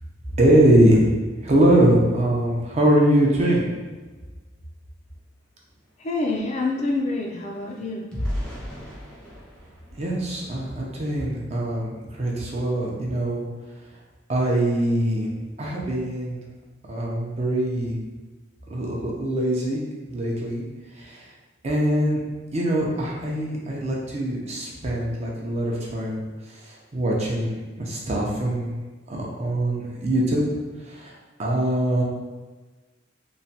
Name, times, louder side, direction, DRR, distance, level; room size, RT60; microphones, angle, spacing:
voice 1, 0.4-1.1 1.4-3.7 10.0-13.4 14.3-15.3 15.6-16.4 16.9-18.0 18.7-19.8 20.1-20.6 21.0-21.3 21.6-22.2 22.5-26.2 26.5-28.7 29.1-30.4 30.9-31.1 31.4-32.0, right 1 dB, 35° right, -3 dB, 0.5 m, -22 dB
sound 1, 5.2-5.3 5.5-11.0 11.5-11.7 12.1-12.3, equal, 5° left, 0.6 m, -37 dB
voice 2, 6.0-8.0, left 2 dB, 35° left, 0 dB, 0.3 m, -26 dB
3.0 x 2.2 x 2.7 m, 1.3 s
head